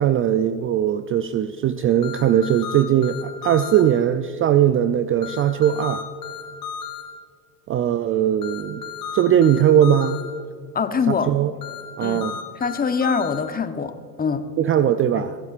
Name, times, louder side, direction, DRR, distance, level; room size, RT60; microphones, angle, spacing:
voice 1, 0.0-6.0 7.7-8.8 9.1-10.2 11.1-11.5 12.0-12.4 14.6-15.4, right 10 dB, 30° right, 11 dB, 0.4 m, -19 dB
sound 1, 2.0-3.8 5.2-7.0 8.4-10.2 11.6-13.4, left 7 dB, 85° left, 2.9 m, -34 dB
voice 2, 10.7-11.3 12.0-12.3 12.6-14.5 15.1-15.3, left 5 dB, 20° left, 9 dB, 0.9 m, -24 dB
23.0 x 12.0 x 2.5 m, 2.3 s
hypercardioid pair, 80°, 48 cm